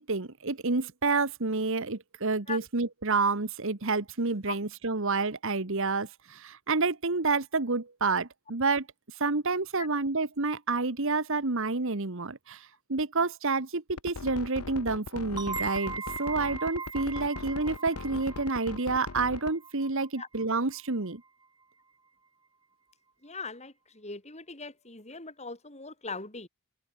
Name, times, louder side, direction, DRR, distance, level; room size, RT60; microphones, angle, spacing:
voice 1, 0.0-8.9 9.2-15.9 16.2-21.2, right 3 dB, 60° right, 1.4 m, -29 dB
sound 1, 14.0-19.5, left 4 dB, 80° left, 0.9 m, -39 dB
sound 2, 15.4-20.8, right 4 dB, 20° right, 5.9 m, -39 dB
voice 2, 23.2-26.5, left 4 dB, 30° left, 5.8 m, -40 dB
head